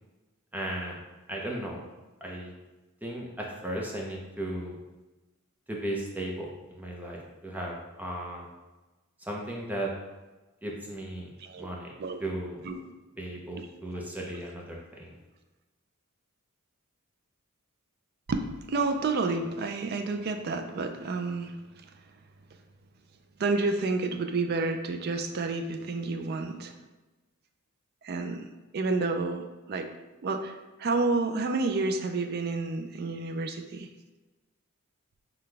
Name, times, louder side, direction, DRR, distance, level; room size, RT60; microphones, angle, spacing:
voice 1, 0.5-1.0 1.3-1.8 2.2-2.5 3.0-4.8 5.7-8.5 9.2-9.9 10.6-11.3 11.6-11.9 12.2-12.6 13.2-15.2, right 1 dB, 5° right, -2 dB, 0.6 m, -36 dB
voice 2, 12.0-12.3 12.6-12.8 18.3-21.6 23.4-26.7 28.0-28.4 28.7-29.9 30.2-30.5 30.8-33.9, right 3 dB, 45° right, 6 dB, 0.4 m, -30 dB
5.8 x 2.2 x 3.3 m, 1.1 s
head